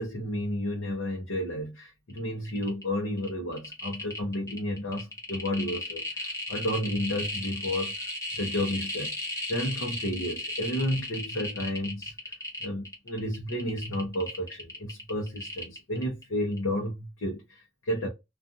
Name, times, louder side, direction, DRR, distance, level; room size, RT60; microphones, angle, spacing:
voice 1, 0.0-7.9 8.4-9.1 9.5-12.3 12.6-18.1, left 1 dB, 70° left, 0.8 m, -32 dB
sound 1, 2.1-2.2 2.4-2.8 3.2-16.2 16.5-16.6, left 1 dB, 15° left, 0.8 m, -35 dB
2.5 x 2.4 x 2.6 m
head